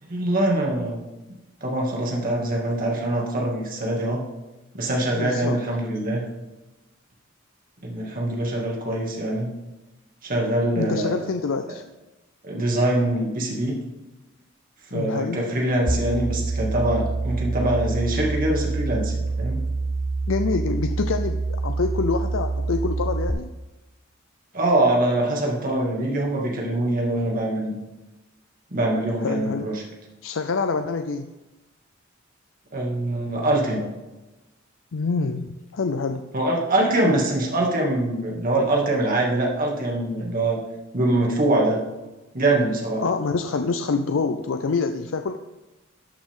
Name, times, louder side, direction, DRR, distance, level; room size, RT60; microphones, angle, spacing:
voice 1, 0.0-1.1 1.6-4.3 4.7-6.2 7.8-9.5 10.2-11.2 12.4-13.8 14.9-19.6 24.5-27.8 28.7-29.8 32.7-33.9 36.3-40.6 40.9-41.8 42.3-43.0, right 1 dB, 45° right, -2 dB, 2.4 m, -23 dB
voice 2, 5.1-5.6 10.8-11.8 14.9-15.5 20.3-23.5 29.2-29.7 30.2-31.3 34.9-36.3 43.0-45.4, left 4 dB, 70° left, 8 dB, 0.5 m, -26 dB
sound 1, 15.9-23.3, right 3 dB, 10° right, 0.5 m, -26 dB
13.5 x 8.9 x 3.7 m, 1.1 s
head